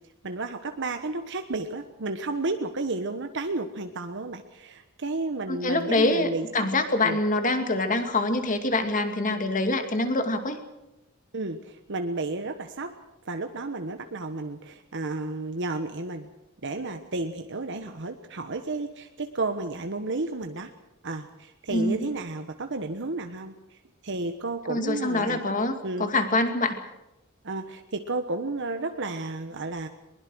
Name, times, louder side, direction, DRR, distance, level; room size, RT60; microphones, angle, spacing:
voice 1, 0.2-6.6 7.0-7.2 11.3-12.9 13.2-16.3 16.6-20.7 21.0-23.6 24.0-25.4 25.8-26.1 27.4-29.9, right 2 dB, 60° right, 6 dB, 1.3 m, -32 dB
voice 2, 5.5-10.6 21.7-22.1 24.7-26.8, left 2 dB, 35° left, 7 dB, 2.4 m, -25 dB
22.0 x 21.0 x 6.3 m, 0.93 s
head